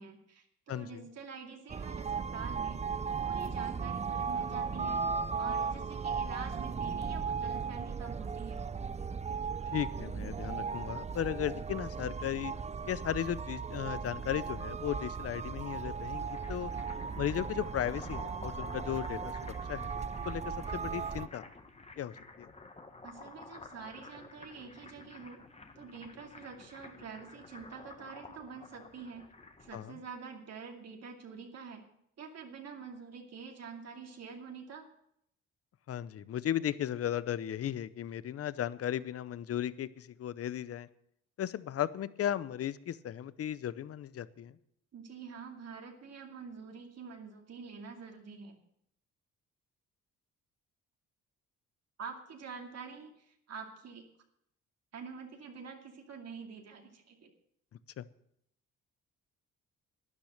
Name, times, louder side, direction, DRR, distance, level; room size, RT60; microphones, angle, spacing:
voice 1, 0.0-2.8 3.2-5.0 5.4-8.6 23.0-25.4 25.8-29.3 29.6-31.8 32.2-34.9 44.9-48.6 52.0-54.0 54.9-57.3, right 5 dB, 55° right, 2 dB, 2.5 m, -47 dB
voice 2, 0.7-1.0 9.7-12.5 12.9-16.7 17.2-19.3 19.7-19.9 20.3-20.4 20.7-21.4 22.0-22.5 29.7-30.0 35.9-40.9 41.4-44.5 58.0-58.1, left 10 dB, 50° left, 17 dB, 0.7 m, -35 dB
sound 1, 1.7-21.3, right 5 dB, 20° right, 0.5 m, -36 dB
sound 2, 16.1-29.8, left 3 dB, 20° left, 1.6 m, -51 dB
12.0 x 10.5 x 6.6 m, 0.73 s
cardioid pair, 90°, 30 cm